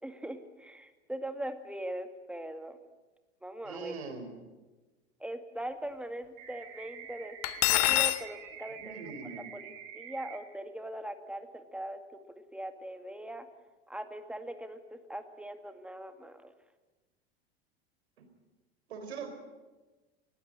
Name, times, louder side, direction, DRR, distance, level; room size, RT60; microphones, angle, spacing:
voice 1, 0.0-2.8 3.4-3.9 5.2-13.5 13.9-16.5, right 1 dB, 5° right, 8 dB, 2.0 m, -41 dB
voice 2, 3.6-4.3 8.8-9.5 18.2-18.3 18.9-19.3, right 5 dB, 75° right, 7 dB, 4.3 m, -42 dB
sound 1, 6.4-10.4, right 9 dB, 50° right, 4.6 m, -47 dB
Cutlery silverware, 7.4-8.2, left 20 dB, 50° left, 1.0 m, -25 dB
20.0 x 15.5 x 9.9 m, 1.2 s
hypercardioid pair, 85°, 32 cm